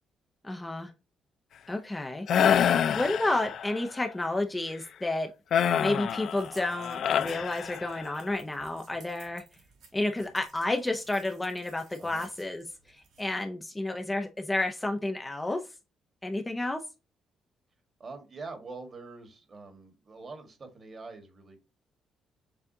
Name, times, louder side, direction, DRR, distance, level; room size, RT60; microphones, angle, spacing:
voice 1, 0.4-0.9 1.7-5.3 5.8-9.4 9.9-15.6 16.2-16.8, left 2 dB, 15° left, 4 dB, 0.6 m, -31 dB
sound 1, 2.3-3.8 5.5-8.2, left 8 dB, 65° left, 0.3 m, -27 dB
sound 2, 6.1-13.3, right 4 dB, 80° right, 2.7 m, -57 dB
voice 2, 18.0-21.6, right 3 dB, 40° right, 6 dB, 1.5 m, -44 dB
6.9 x 2.4 x 2.7 m, 0.28 s
cardioid pair, 90°, 0 cm